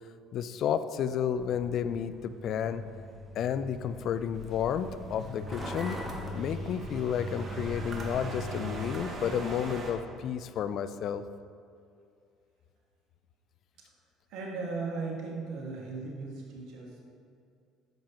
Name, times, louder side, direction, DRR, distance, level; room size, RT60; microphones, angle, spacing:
voice 1, 0.3-2.8 3.3-6.0 6.3-11.2, left 8 dB, 60° left, 12 dB, 0.4 m, -31 dB
Truck, 1.3-9.0, left 1 dB, 15° right, 1.8 m, -41 dB
sound 1, 4.3-9.9, right 2 dB, 45° right, 1.3 m, -41 dB
voice 2, 14.3-17.1, right 3 dB, 65° right, -2 dB, 2.0 m, -37 dB
10.5 x 7.4 x 3.0 m, 2.4 s
hypercardioid pair, 65°, 0 cm